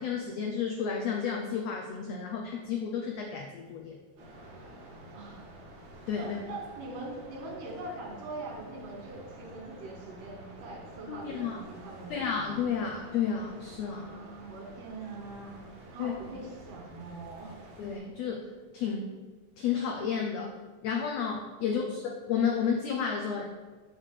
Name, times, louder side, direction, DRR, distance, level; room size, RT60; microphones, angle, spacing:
voice 1, 0.0-4.0 6.1-6.4 11.1-11.6 12.1-14.1 16.0-16.1 17.8-18.5 18.7-19.1 19.6-20.5 20.8-22.0 22.3-23.4, left 7 dB, 85° left, 1 dB, 1.4 m, -31 dB
sound 1, 4.2-18.0, right 1 dB, 50° right, 1.3 m, -49 dB
voice 2, 5.1-5.4 6.1-12.3 13.9-15.6 15.9-17.5 21.6-21.9, right 2 dB, 85° right, 0 dB, 2.8 m, -42 dB
6.3 x 3.2 x 5.8 m, 1.4 s
omnidirectional pair, 3.5 m